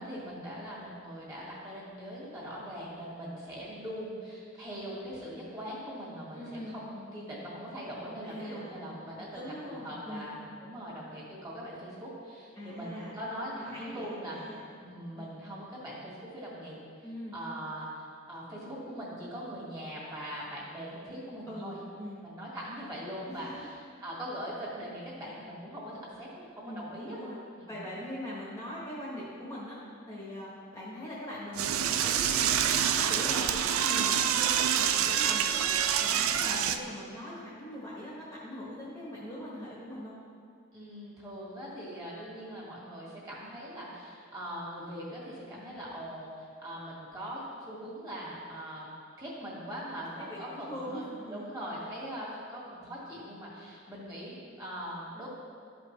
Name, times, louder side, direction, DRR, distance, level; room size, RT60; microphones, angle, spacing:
voice 1, 0.0-14.5 14.8-16.8 17.3-21.8 22.2-23.8 24.0-27.2 27.6-27.8 36.4-36.7 40.7-48.9 49.2-55.3, equal, 20° right, -7 dB, 2.0 m, -41 dB
voice 2, 6.3-6.8 8.2-10.3 12.6-13.1 13.5-14.6 15.1-15.3 17.0-17.4 21.4-22.2 23.3-23.7 26.6-27.4 27.7-29.8 30.1-32.5 32.8-35.7 36.0-40.2 50.2-51.5, equal, 15° left, -7 dB, 1.2 m, -41 dB
Door / Toilet flush, 31.5-36.8, right 9 dB, 85° right, 0.4 m, -27 dB
12.5 x 5.2 x 3.2 m, 2.2 s
head